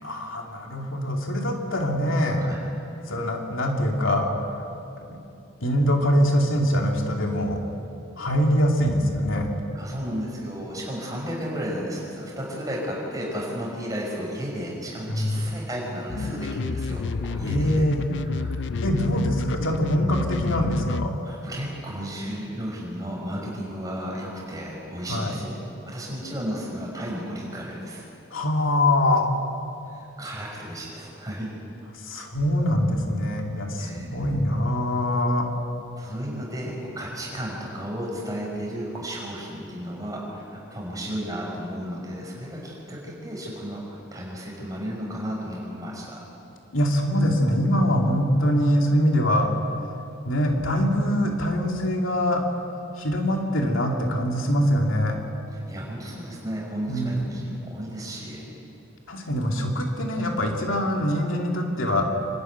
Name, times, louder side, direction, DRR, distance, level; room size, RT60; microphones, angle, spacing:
voice 1, 0.0-2.4 3.1-4.7 5.1-5.2 5.6-7.6 8.2-9.5 15.1-15.5 17.4-18.0 18.8-21.1 25.1-25.3 28.3-29.3 32.0-35.5 46.7-49.5 50.2-52.4 53.0-55.2 56.9-57.2 59.1-62.0, equal, 85° left, 1 dB, 2.6 m, -23 dB
voice 2, 9.7-17.8 18.3-18.5 21.2-25.5 25.8-28.1 29.9-31.5 33.8-34.2 35.9-46.2 55.5-58.4, equal, 20° right, -3 dB, 5.6 m, -33 dB
sound 1, 16.1-21.1, left 4 dB, 60° left, 0.5 m, -30 dB
26.0 x 12.5 x 9.4 m, 2.8 s
head